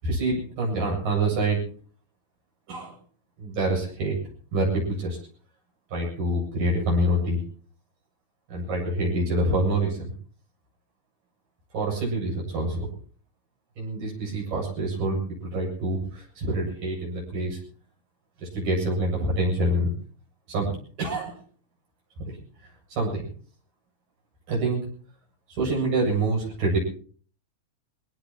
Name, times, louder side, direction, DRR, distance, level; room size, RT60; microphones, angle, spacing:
voice 1, 0.0-1.6 2.7-2.9 3.4-4.2 4.5-5.2 5.9-7.4 8.5-10.1 11.7-12.9 13.8-17.6 18.4-19.9 20.5-21.4 22.9-23.3 24.5-24.8 25.5-26.8, right 1 dB, 85° right, -3 dB, 9.3 m, -26 dB
23.5 x 18.5 x 3.0 m, 0.44 s
omnidirectional pair, 3.8 m